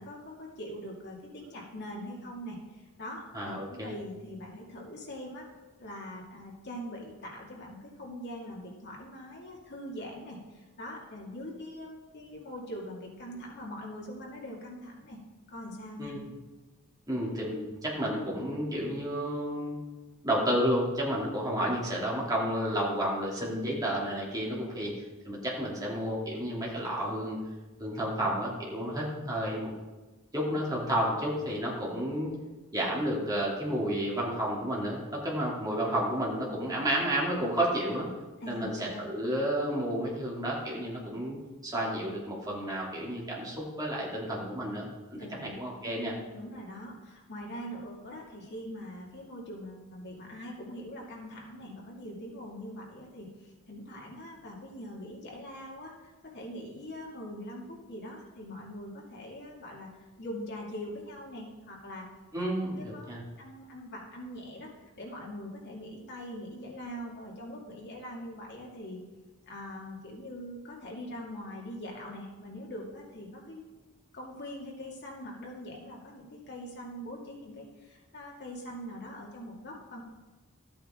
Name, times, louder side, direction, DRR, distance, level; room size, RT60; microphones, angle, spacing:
voice 1, 0.0-2.6 3.0-5.4 5.8-15.2 15.5-16.1 38.4-39.1 45.1-45.6 46.3-53.3 53.7-59.9 60.2-62.1 62.8-64.7 65.0-69.0 69.4-80.0, equal, 55° left, -2 dB, 2.4 m, -42 dB
voice 2, 3.3-3.9 16.0-16.2 17.1-19.8 20.2-24.9 25.2-27.4 27.8-29.7 30.3-32.3 32.7-38.1 38.5-41.4 41.6-46.1 62.3-63.2, equal, 20° right, -5 dB, 2.8 m, -31 dB
13.0 x 8.7 x 3.8 m, 1.2 s
head